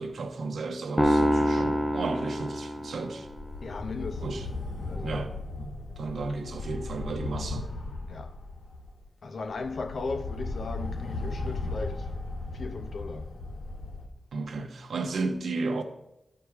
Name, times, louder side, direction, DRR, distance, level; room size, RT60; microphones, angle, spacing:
voice 1, 0.0-3.3 4.2-4.4 5.0-5.3 5.6-7.7 14.3-15.8, right 3 dB, 85° right, 1.1 m, -33 dB
sound 1, 1.0-3.4, equal, 15° left, 1.0 m, -26 dB
sound 2, 1.4-1.9 2.3-2.4 3.2-9.0 9.4-14.1, left 3 dB, 85° left, 1.9 m, -37 dB
voice 2, 3.6-4.5 4.8-5.2 8.1-8.3 9.2-12.1 12.5-13.3, left 3 dB, 70° left, 0.8 m, -37 dB
12.5 x 4.9 x 4.8 m
wide cardioid pair, 105°, 0 cm